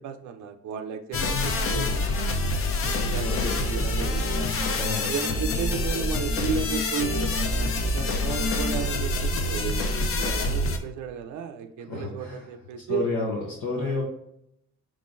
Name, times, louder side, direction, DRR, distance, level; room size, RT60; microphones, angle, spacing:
voice 1, 0.0-2.5 2.8-4.6 5.0-9.9 10.1-13.1 13.7-14.0, right 7 dB, 70° right, 6 dB, 0.5 m, -34 dB
sound 1, 1.1-10.8, left 2 dB, 45° left, 0.6 m, -26 dB
voice 2, 3.2-3.6 4.7-5.1 11.9-12.4 12.9-14.0, left 3 dB, 75° left, -5 dB, 1.1 m, -30 dB
4.8 x 3.7 x 2.5 m, 0.77 s
cardioid pair, 90°, 30 cm